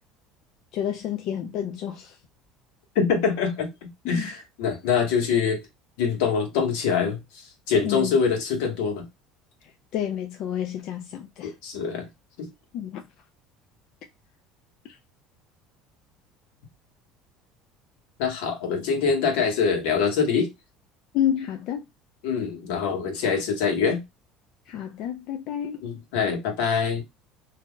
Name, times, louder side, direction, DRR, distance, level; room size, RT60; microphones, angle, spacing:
voice 1, 0.7-2.2 4.0-4.3 7.8-8.2 9.9-11.5 12.7-13.0 21.1-21.8 24.7-25.8, left 10 dB, 55° left, 0.5 m, -29 dB
voice 2, 2.9-5.6 6.0-9.0 11.4-12.1 12.4-12.5 18.2-20.5 22.2-24.0 25.8-27.0, left 6 dB, 85° left, 1.3 m, -24 dB
2.8 x 2.3 x 3.5 m
cardioid pair, 145°, 0 cm